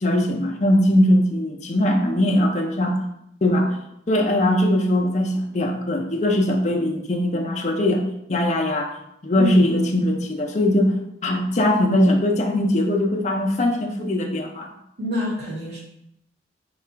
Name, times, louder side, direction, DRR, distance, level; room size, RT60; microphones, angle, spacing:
voice 1, 0.0-3.0 3.4-3.8 4.1-8.9 9.2-11.0 11.2-14.7, left 1 dB, 40° left, 2 dB, 0.5 m, -20 dB
voice 2, 9.3-9.7 15.0-15.8, left 1 dB, 70° right, -9 dB, 1.3 m, -27 dB
3.8 x 2.4 x 4.5 m, 0.76 s
head